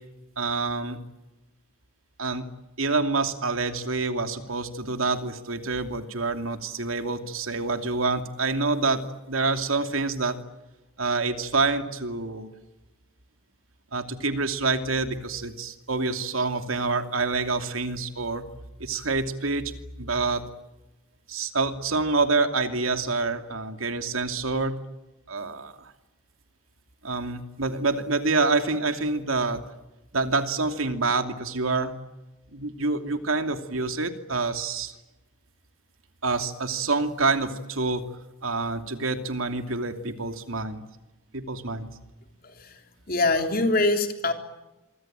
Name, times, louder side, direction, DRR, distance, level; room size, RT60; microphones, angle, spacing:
voice 1, 0.4-1.0 2.2-2.5 2.8-9.0 9.3-10.4 11.0-12.5 13.9-18.4 18.8-19.7 20.0-20.4 21.3-24.8 25.3-25.9 27.0-29.6 30.1-31.9 32.5-35.0 36.2-38.0 38.4-40.8 41.3-41.9, right 3 dB, 80° right, 7 dB, 2.7 m, -27 dB
voice 2, 42.4-42.8 43.1-44.3, left 2 dB, 45° left, 5 dB, 3.7 m, -24 dB
27.0 x 24.5 x 8.9 m, 1.0 s
head